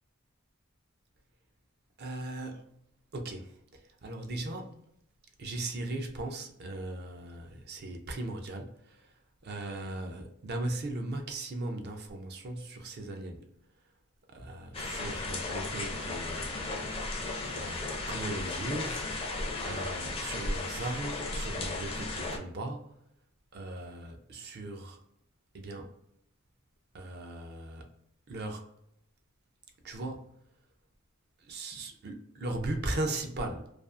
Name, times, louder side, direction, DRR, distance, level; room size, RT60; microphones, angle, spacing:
voice 1, 2.0-2.7 3.1-4.8 5.4-9.1 9.4-13.5 14.3-17.1 17.5-23.0 23.5-25.0 25.5-26.0 26.9-27.9 28.3-28.6 29.8-30.4 31.4-33.7, right 2 dB, 50° right, 0.4 m, -38 dB
sound 1, 14.7-22.4, left 2 dB, 25° left, 0.4 m, -35 dB
2.5 x 2.3 x 2.4 m
head